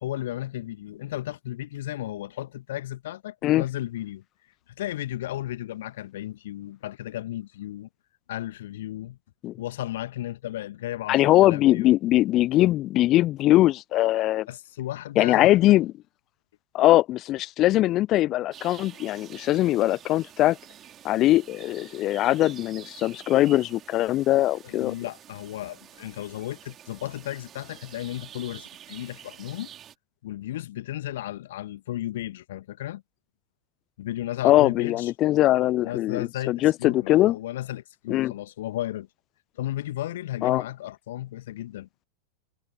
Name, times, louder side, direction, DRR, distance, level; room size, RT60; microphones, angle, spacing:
voice 1, 0.0-4.2 4.7-7.9 8.3-9.2 9.6-11.9 14.5-15.8 24.6-29.7 30.2-33.0 34.0-35.1 35.8-39.1 39.6-42.1, left 14 dB, 55° left, 1.8 m, -34 dB
voice 2, 11.1-14.5 15.2-15.9 16.7-20.6 21.0-24.9 34.4-37.4 38.1-38.3 40.4-40.6, left 15 dB, 35° left, 0.4 m, -21 dB
sound 1, 18.5-30.0, right 10 dB, 30° right, 3.7 m, -48 dB
figure-of-eight pair, 90°, 0 cm